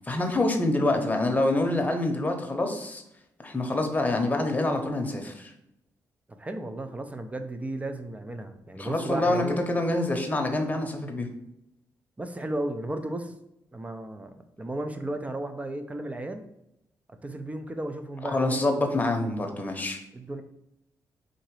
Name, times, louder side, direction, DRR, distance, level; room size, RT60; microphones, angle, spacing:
voice 1, 0.1-3.0 3.4-5.5 8.8-11.3 18.2-20.0, left 2 dB, 20° left, 3 dB, 0.9 m, -26 dB
voice 2, 6.4-9.6 12.2-13.3 13.7-16.4 17.2-18.9 20.1-20.4, right 1 dB, 20° right, 7 dB, 0.6 m, -34 dB
3.8 x 2.8 x 4.8 m, 0.82 s
supercardioid pair, 60°, 8 cm